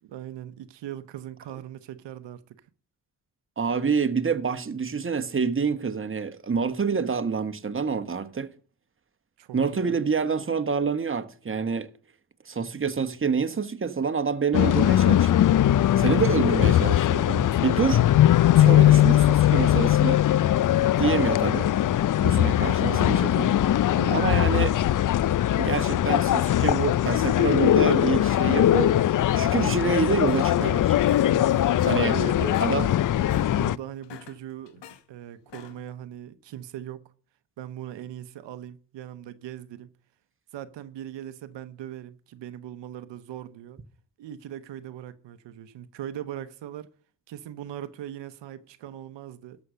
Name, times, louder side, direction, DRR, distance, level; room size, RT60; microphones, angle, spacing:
voice 1, 0.0-2.6 9.4-10.0 17.1-17.6 23.9-24.3 31.2-31.5 31.8-32.9 33.5-37.1 37.6-39.9 40.5-43.8 44.2-46.9 47.3-49.6, right 11 dB, 90° right, 0.8 m, -39 dB
voice 2, 3.6-8.5 9.5-11.9 12.5-15.5 16.0-17.3 17.6-18.1 18.5-20.2 21.0-21.8 22.2-24.7 25.6-29.0 29.3-31.0 31.8-32.2 32.6-32.9, right 5 dB, 30° right, 1.1 m, -27 dB
sound 1, 14.5-33.8, left 12 dB, 50° left, 0.5 m, -20 dB
sound 2, 30.0-30.7 31.0-32.1 32.4-32.8 33.1-33.5 33.9-35.0 35.4-35.9, left 9 dB, 80° left, 1.1 m, -45 dB
12.5 x 6.4 x 6.6 m
cardioid pair, 55°, 42 cm